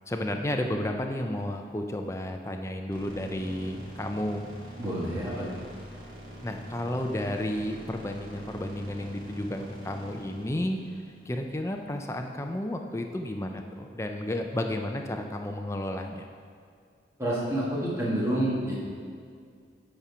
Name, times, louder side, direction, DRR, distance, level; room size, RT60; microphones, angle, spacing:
voice 1, 0.1-4.5 6.4-10.8 11.3-16.3, left 1 dB, 15° left, 4 dB, 0.5 m, -32 dB
sound 1, 2.9-12.1, right 1 dB, 50° right, 1.7 m, -44 dB
voice 2, 4.8-5.6 17.2-18.8, right 1 dB, 15° right, -6 dB, 1.6 m, -28 dB
8.8 x 4.3 x 6.0 m, 2.2 s
head